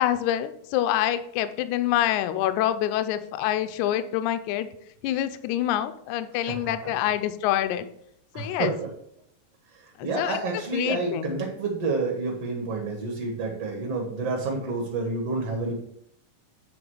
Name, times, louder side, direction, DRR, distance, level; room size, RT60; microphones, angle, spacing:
voice 1, 0.0-4.7 5.0-7.9 8.3-8.7 10.0-10.4 10.7-11.3, left 12 dB, 85° left, 9 dB, 1.7 m, -26 dB
voice 2, 6.3-6.9 8.3-8.9 9.7-15.8, right 3 dB, 60° right, 1 dB, 1.8 m, -29 dB
8.9 x 3.6 x 6.1 m, 0.72 s
omnidirectional pair, 4.1 m